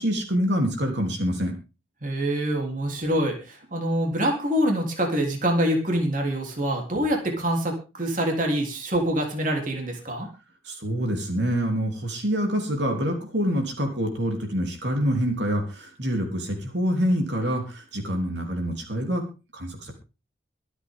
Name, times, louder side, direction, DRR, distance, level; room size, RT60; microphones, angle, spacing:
voice 1, 0.0-1.5 10.6-19.2 19.5-19.9, equal, 65° right, 3 dB, 3.3 m, -26 dB
voice 2, 2.0-10.3, right 1 dB, 45° right, 1 dB, 3.6 m, -25 dB
24.5 x 8.4 x 3.8 m, 0.31 s
head